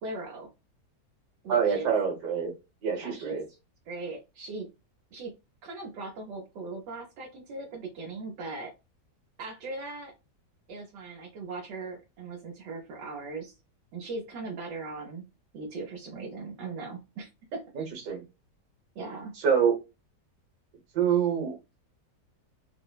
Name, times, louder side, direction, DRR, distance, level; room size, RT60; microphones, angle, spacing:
voice 1, 0.0-0.5 1.4-1.9 3.0-3.4 3.9-4.7 5.1-5.3 5.6-8.7 9.4-10.1 10.7-13.5 13.9-15.2 15.5-17.8 18.9-19.3, right 3 dB, 80° right, 1.4 m, -39 dB
voice 2, 1.5-2.5 2.8-3.4 17.7-18.2 19.4-19.8 20.9-21.6, right 7 dB, 65° right, 1.6 m, -26 dB
4.1 x 2.0 x 2.2 m
omnidirectional pair, 1.8 m